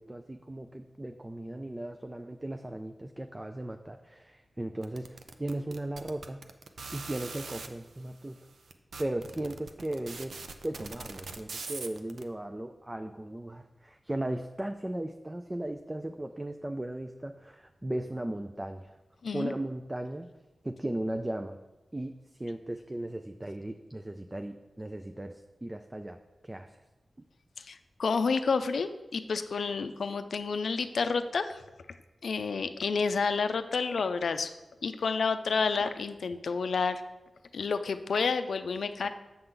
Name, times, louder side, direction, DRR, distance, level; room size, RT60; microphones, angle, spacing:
voice 1, 0.0-6.4 6.9-8.5 9.0-10.4 10.6-19.0 19.3-20.3 20.6-21.6 21.9-26.2 26.4-26.8, right 1 dB, 15° right, 6 dB, 0.3 m, -37 dB
sound 1, 4.8-7.7 8.4-8.5 8.7-12.2, right 4 dB, 80° right, 0.5 m, -42 dB
voice 2, 19.2-19.5 27.6-31.6 32.2-34.5 34.8-37.0 37.5-39.1, left 5 dB, 85° left, 10 dB, 0.4 m, -30 dB
7.9 x 6.9 x 3.8 m, 1.1 s
wide cardioid pair, 135°, 0 cm